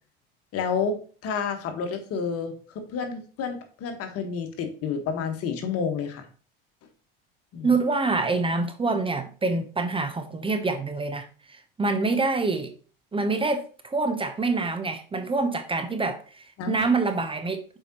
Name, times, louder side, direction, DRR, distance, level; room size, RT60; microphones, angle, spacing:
voice 1, 0.5-6.2 7.5-7.7 16.6-16.9, left 6 dB, 55° left, 1.5 m, -30 dB
voice 2, 7.6-12.7 13.1-17.6, right 3 dB, 20° right, 0.8 m, -26 dB
7.0 x 4.9 x 3.0 m
hypercardioid pair, 80°, 29 cm